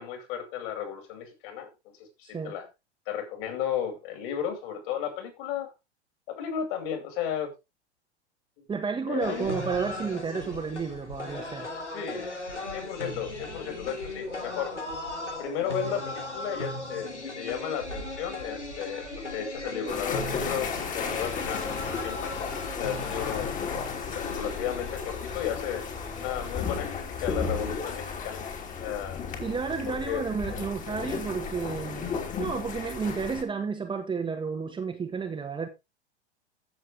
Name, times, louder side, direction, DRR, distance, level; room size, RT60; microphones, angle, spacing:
voice 1, 0.0-1.9 2.2-2.7 3.1-5.7 6.3-7.5 9.1-9.5 11.9-12.3 12.7-14.8 15.4-22.4 22.8-23.5 24.3-25.9 26.2-28.4 28.8-29.2 29.9-30.3 30.6-30.7 31.0-31.2, left 9 dB, 45° left, 5.6 m, -34 dB
voice 2, 8.7-11.7 29.4-35.7, right 5 dB, 15° right, 1.7 m, -32 dB
sound 1, 9.2-26.9, left 2 dB, 90° left, 3.1 m, -38 dB
sound 2, 19.9-33.4, left 5 dB, 25° left, 3.0 m, -34 dB
15.0 x 7.7 x 3.5 m
figure-of-eight pair, 100°, 34 cm